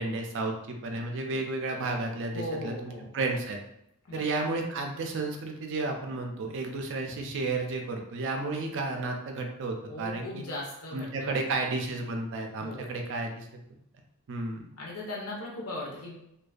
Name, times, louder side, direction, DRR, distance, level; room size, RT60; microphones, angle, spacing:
voice 1, 0.0-3.6 4.1-10.4 10.9-13.6 14.3-14.6, right 3 dB, 60° right, 3 dB, 0.4 m, -32 dB
voice 2, 2.3-3.1 4.1-4.2 9.9-11.6 12.6-12.9 14.8-16.2, left 1 dB, 75° left, -3 dB, 0.6 m, -38 dB
2.5 x 2.2 x 2.3 m, 0.78 s
head